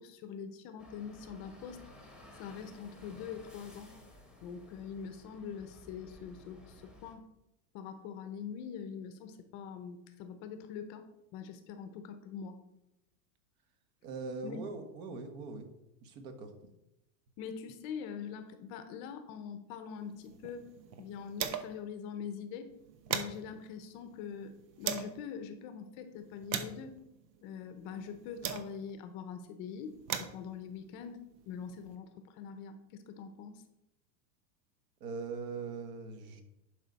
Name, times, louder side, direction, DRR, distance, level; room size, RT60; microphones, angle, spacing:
voice 1, 0.0-1.8 2.3-3.9 4.4-7.3 7.7-11.1 11.3-12.6 14.4-14.6 17.4-20.7 21.0-22.7 23.1-27.0 27.4-31.2 31.5-33.6, left 7 dB, 35° left, 8 dB, 0.7 m, -43 dB
sound 1, 0.8-7.2, left 1 dB, ahead, 1.0 m, -55 dB
voice 2, 14.0-15.7 16.0-16.5 35.0-36.4, right 4 dB, 55° right, 7 dB, 1.5 m, -41 dB
sound 2, 20.1-21.9 22.2-22.3 22.7-25.2 25.8-29.0 29.7-32.0, right 8 dB, 85° right, 1.0 m, -41 dB
11.0 x 5.0 x 4.0 m, 0.90 s
supercardioid pair, 155°, 49 cm